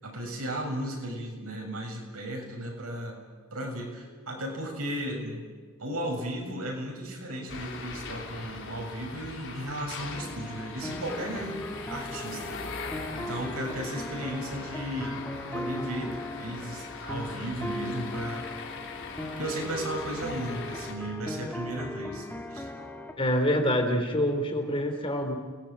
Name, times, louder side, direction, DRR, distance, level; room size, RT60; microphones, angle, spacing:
voice 1, 0.0-3.2 3.5-5.5 5.8-12.7 13.2-15.2 15.5-18.5 19.4-22.7, right 1 dB, 85° right, 2 dB, 7.2 m, -35 dB
sound 1, 7.5-20.9, left 4 dB, 60° left, 3.7 m, -41 dB
sound 2, 10.1-23.1, left 1 dB, 10° left, 1.8 m, -38 dB
voice 2, 23.2-25.4, equal, 25° left, 5 dB, 3.3 m, -26 dB
29.5 x 20.5 x 8.9 m, 1.5 s
head